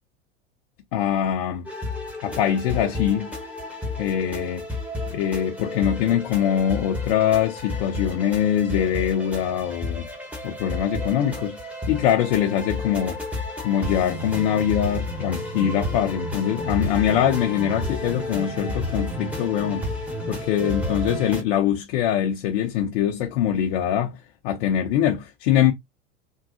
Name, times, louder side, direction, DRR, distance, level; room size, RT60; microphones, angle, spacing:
voice 1, 0.9-1.7 2.2-3.3 4.0-4.7 5.1-10.1 10.4-11.6 11.9-13.2 13.6-19.9 20.3-25.7, left 10 dB, 50° left, 0.6 m, -23 dB
sound 1, 1.6-21.4, left 1 dB, 5° right, 1.0 m, -31 dB
3.5 x 2.2 x 2.7 m
figure-of-eight pair, 80°, 35 cm